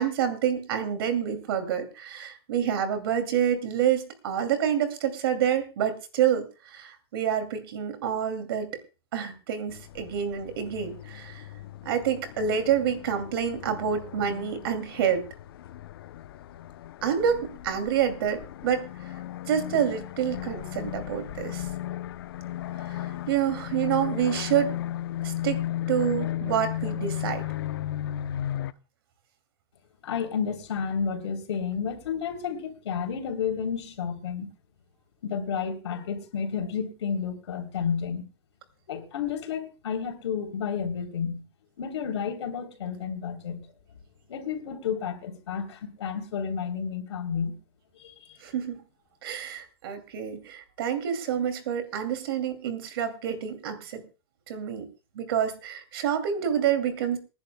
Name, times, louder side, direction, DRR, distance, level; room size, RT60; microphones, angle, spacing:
voice 1, 0.0-8.7 9.1-11.5 11.8-15.2 17.0-18.8 19.5-21.7 22.9-23.0 23.3-24.7 25.2-25.6 25.9-27.4 48.4-48.8 49.2-54.0 54.5-54.9 55.1-57.2, right 8 dB, 60° right, 2.6 m, -27 dB
sound 1, 9.7-28.7, left 12 dB, 60° left, 0.7 m, -35 dB
voice 2, 30.0-34.5 35.2-38.2 38.9-41.4 41.8-43.7 44.3-47.5 47.9-48.4, left 7 dB, 85° left, 3.3 m, -31 dB
28.0 x 10.5 x 2.2 m
supercardioid pair, 175°, 14 cm